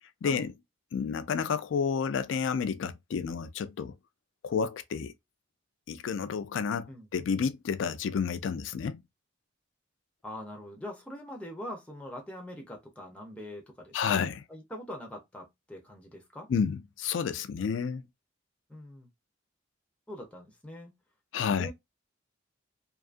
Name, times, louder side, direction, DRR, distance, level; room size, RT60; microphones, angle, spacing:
voice 1, 0.2-0.5 0.9-3.9 4.4-5.1 5.9-9.0 13.9-14.4 16.5-18.0 21.3-21.7, left 6 dB, 70° left, 0.3 m, -30 dB
voice 2, 10.2-14.2 14.5-16.5 18.7-19.1 20.1-20.9 21.5-21.7, left 1 dB, 5° left, 0.5 m, -43 dB
2.6 x 2.4 x 2.4 m
head